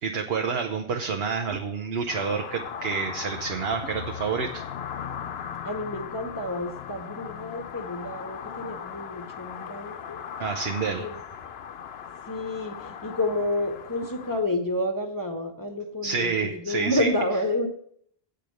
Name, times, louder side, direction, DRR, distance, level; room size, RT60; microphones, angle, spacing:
voice 1, 0.0-4.6 10.4-11.1 16.0-17.1, right 5 dB, 70° right, 4 dB, 1.1 m, -28 dB
sound 1, 2.1-14.4, left 8 dB, 70° left, 0.9 m, -38 dB
voice 2, 5.6-10.2 11.0-11.2 12.3-17.7, left 1 dB, 20° left, 3 dB, 0.8 m, -29 dB
8.6 x 5.2 x 7.8 m, 0.66 s
omnidirectional pair, 1.1 m